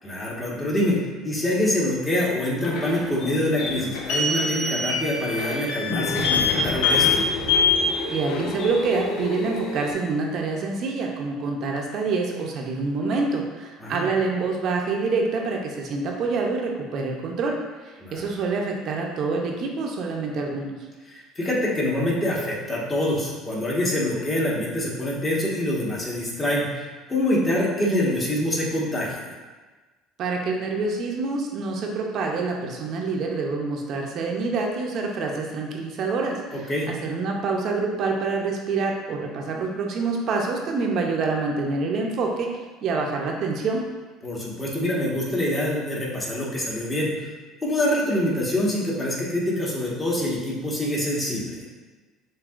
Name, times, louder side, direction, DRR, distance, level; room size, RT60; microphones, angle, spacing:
voice 1, 0.0-1.0 1.2-7.2 13.8-14.1 18.0-18.3 21.1-29.2 36.5-36.9 44.2-47.3 47.6-51.6, left 1 dB, 25° left, -5 dB, 1.5 m, -25 dB
sound 1, 2.6-9.9, left 4 dB, 70° left, 0.6 m, -25 dB
voice 2, 8.1-17.6 17.8-20.7 30.2-42.5 42.8-43.8, right 4 dB, 55° right, 0 dB, 0.7 m, -26 dB
7.1 x 2.7 x 2.5 m, 1.3 s
supercardioid pair, 95°, 0 cm